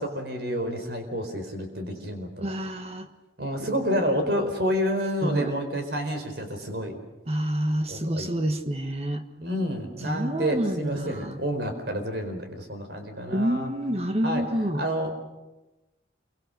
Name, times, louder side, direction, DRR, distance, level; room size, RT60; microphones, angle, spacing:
voice 1, 0.0-2.5 3.4-7.0 7.9-8.3 9.4-13.7 14.2-14.4 14.7-15.1, equal, 60° right, 6 dB, 4.6 m, -29 dB
voice 2, 2.4-3.1 5.2-5.5 7.3-9.2 10.0-11.4 13.3-14.8, equal, 35° right, 7 dB, 1.4 m, -28 dB
28.0 x 24.0 x 6.6 m, 1.0 s
head